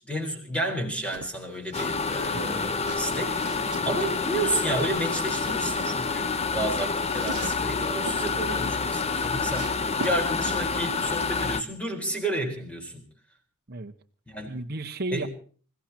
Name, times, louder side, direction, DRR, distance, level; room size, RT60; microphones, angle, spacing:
voice 1, 0.0-13.0 14.3-14.6 15.1-15.3, right 1 dB, 5° left, 3 dB, 4.3 m, -31 dB
sound 1, 1.1-2.0 2.3-3.8 4.4-5.6 6.3-8.2 8.7-10.2, right 4 dB, 90° right, 1.2 m, -40 dB
sound 2, 1.7-11.6, left 4 dB, 30° left, 0.8 m, -28 dB
voice 2, 2.3-2.7 13.7-13.9 14.5-15.3, right 2 dB, 45° right, 3 dB, 1.2 m, -34 dB
28.0 x 16.5 x 2.9 m, 0.42 s
head